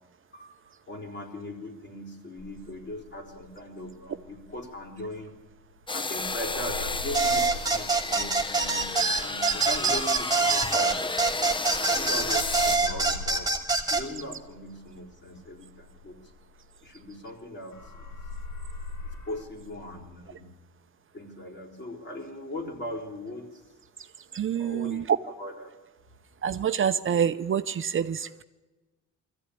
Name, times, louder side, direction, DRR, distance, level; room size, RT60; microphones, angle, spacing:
voice 1, 0.3-5.3 5.9-13.6 13.9-16.2 16.8-18.1 19.0-20.6 21.1-23.6 24.5-25.7, left 1 dB, 40° left, 3 dB, 4.2 m, -40 dB
sound 1, 2.4-5.9 6.2-11.6 11.9-17.4 17.7-20.1, left 3 dB, 85° left, 2.2 m, -42 dB
sound 2, 5.9-12.8, left 3 dB, 15° left, 0.6 m, -32 dB
sound 3, 7.1-14.0, right 3 dB, 10° right, 2.4 m, -25 dB
voice 2, 24.3-25.0 26.4-28.4, right 8 dB, 45° right, 10 dB, 0.7 m, -27 dB
20.5 x 14.5 x 9.9 m, 1.2 s
cardioid pair, 90°, 30 cm